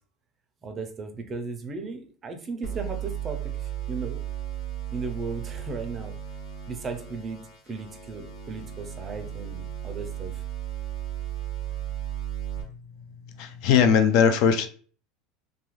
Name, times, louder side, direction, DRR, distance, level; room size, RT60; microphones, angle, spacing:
voice 1, 0.6-4.2 4.9-6.2 6.7-7.4 7.7-10.4, right 4 dB, 20° right, 0.4 m, -36 dB
sound 1, 2.6-12.6, right 11 dB, 85° left, 1.5 m, -35 dB
voice 2, 13.4-14.7, left 7 dB, 55° left, 0.3 m, -19 dB
2.7 x 2.4 x 3.1 m
supercardioid pair, 155°, 0 cm